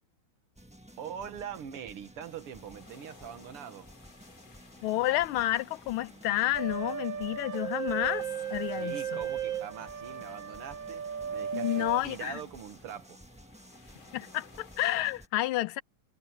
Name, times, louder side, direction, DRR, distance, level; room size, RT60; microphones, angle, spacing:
sound 1, 0.6-15.3, right 1 dB, 5° right, 1.0 m, -53 dB
voice 1, 1.0-3.9 8.7-11.0 11.3-13.2, right 8 dB, 90° right, 2.3 m, -43 dB
sound 2, 2.2-15.2, left 5 dB, 65° left, 3.7 m, -58 dB
voice 2, 4.8-8.3 8.5-9.2 11.5-12.4 14.1-15.8, left 15 dB, 80° left, 1.5 m, -30 dB
sound 3, 6.5-12.0, right 8 dB, 60° right, 2.3 m, -35 dB
omnidirectional pair, 2.4 m